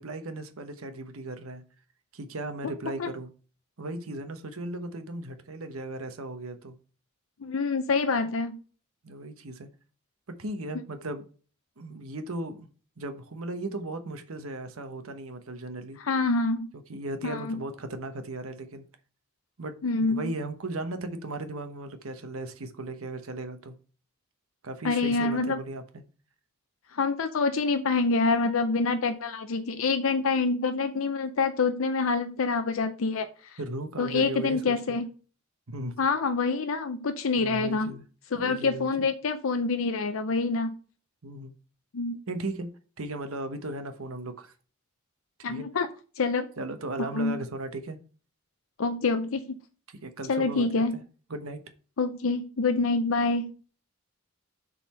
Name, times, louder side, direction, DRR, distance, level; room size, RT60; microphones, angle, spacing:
voice 1, 0.0-1.6 2.1-3.3 3.8-6.8 9.0-9.7 10.3-11.2 11.8-12.7 13.0-16.0 16.9-18.8 19.6-23.7 24.6-26.0 33.6-35.0 35.7-35.9 37.4-38.0 38.3-39.1 41.2-41.5 42.3-44.5 45.5-45.7 46.6-48.0 49.9-50.7 50.9-51.0 51.3-51.6, right 2 dB, 85° right, 1.1 m, -36 dB
voice 2, 7.4-8.6 16.0-16.7 17.2-17.6 19.8-20.2 24.8-25.6 26.9-33.6 34.0-35.1 36.0-37.9 38.3-40.8 41.9-42.2 45.4-45.9 46.1-46.5 47.1-47.4 48.8-49.6 50.3-51.0 52.0-53.6, left 4 dB, 75° left, 0.6 m, -26 dB
7.3 x 4.2 x 5.6 m
head